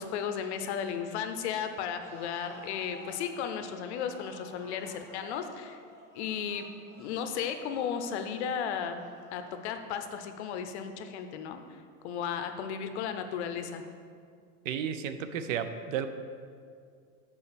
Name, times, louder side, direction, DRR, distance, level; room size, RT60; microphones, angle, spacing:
voice 1, 0.0-5.8 6.1-6.7 7.0-9.0 9.3-11.6 12.0-13.8, left 7 dB, 50° left, 8 dB, 0.6 m, -34 dB
sound 1, 2.0-9.8, left 1 dB, 5° right, 1.2 m, -52 dB
voice 2, 14.6-16.1, right 8 dB, 65° right, 10 dB, 0.6 m, -33 dB
7.1 x 4.2 x 6.8 m, 2.2 s
supercardioid pair, 175°, 43 cm